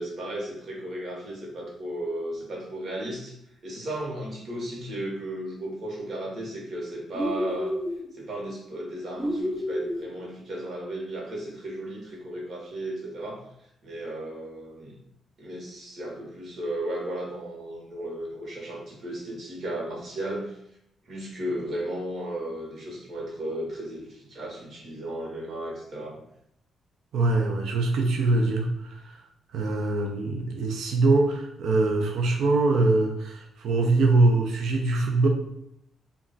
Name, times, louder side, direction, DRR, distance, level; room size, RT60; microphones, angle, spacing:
voice 1, 0.0-3.3 3.6-7.8 8.1-13.4 13.8-14.9 15.4-20.6 21.1-26.2, right 1 dB, 55° right, -2 dB, 1.0 m, -35 dB
sound 1, 7.1-8.1 9.2-10.1, equal, 5° right, 0.6 m, -29 dB
voice 2, 27.1-29.1 29.5-35.3, right 2 dB, 75° right, 3 dB, 0.4 m, -23 dB
2.3 x 2.2 x 3.8 m, 0.75 s
cardioid pair, 120°, 0 cm